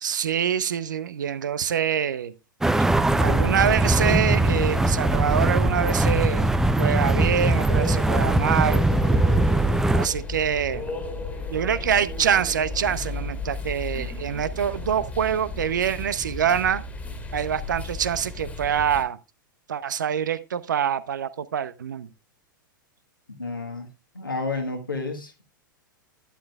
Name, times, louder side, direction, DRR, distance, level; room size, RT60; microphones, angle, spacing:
voice 1, 0.0-2.3 3.2-6.5 6.8-8.8 9.9-10.8 11.5-16.8 17.3-19.2 19.7-22.1, right 8 dB, 65° right, 0.8 m, -25 dB
sound 1, 2.6-10.1, right 2 dB, 5° right, 0.5 m, -21 dB
sound 2, 3.6-19.0, left 3 dB, 10° left, 1.9 m, -34 dB
voice 2, 23.4-23.9 24.1-25.4, left 3 dB, 85° left, 1.6 m, -30 dB
11.5 x 10.5 x 2.3 m
figure-of-eight pair, 95°, 11 cm